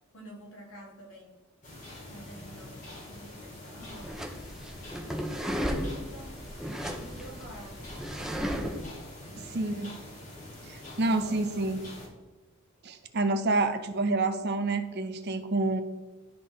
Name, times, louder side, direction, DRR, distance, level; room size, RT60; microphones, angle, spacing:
voice 1, 0.1-1.3 2.1-4.2 5.0-8.8 9.3-9.9 11.1-11.6, equal, 70° left, 0 dB, 1.6 m, -49 dB
sound 1, 1.6-12.1, left 1 dB, 35° left, 2.2 m, -45 dB
sound 2, 3.8-8.9, equal, ahead, 0.4 m, -35 dB
voice 2, 9.5-9.9 10.7-11.8 12.8-15.8, right 2 dB, 50° right, 8 dB, 0.6 m, -28 dB
12.0 x 4.1 x 3.1 m, 1.2 s
head